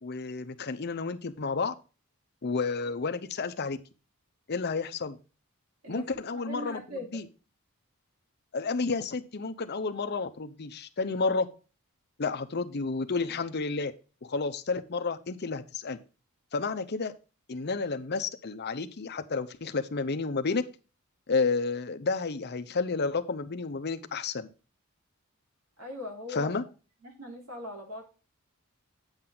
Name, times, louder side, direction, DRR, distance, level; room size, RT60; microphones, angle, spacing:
voice 1, 0.0-1.7 2.4-3.8 4.5-5.2 5.9-7.3 8.5-11.5 12.2-13.9 14.2-16.0 16.5-17.1 17.5-20.6 21.3-24.5 26.3-26.6, left 4 dB, 45° left, 9 dB, 0.7 m, -31 dB
voice 2, 6.3-7.2 25.8-26.5 27.0-28.0, left 1 dB, 80° right, 2 dB, 3.1 m, -40 dB
8.8 x 6.0 x 3.8 m, 0.33 s
head